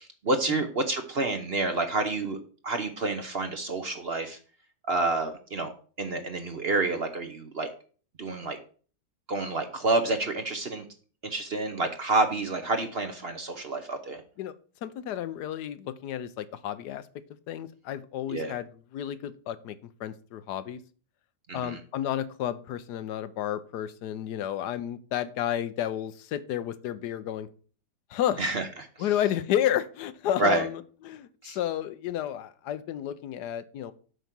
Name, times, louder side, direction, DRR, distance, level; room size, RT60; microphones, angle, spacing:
voice 1, 0.0-2.4 2.6-4.4 4.9-5.7 6.0-7.7 8.2-8.6 9.3-10.8 11.2-14.2 18.3-18.6 21.5-21.8 28.4-28.7 30.4-30.7 31.4-31.6, right 3 dB, 45° right, 7 dB, 0.9 m, -28 dB
voice 2, 14.8-17.1 17.5-20.8 21.5-27.5 28.1-28.4 29.0-33.9, left 11 dB, 80° left, 14 dB, 1.2 m, -31 dB
8.1 x 5.1 x 6.0 m, 0.41 s
omnidirectional pair, 1.8 m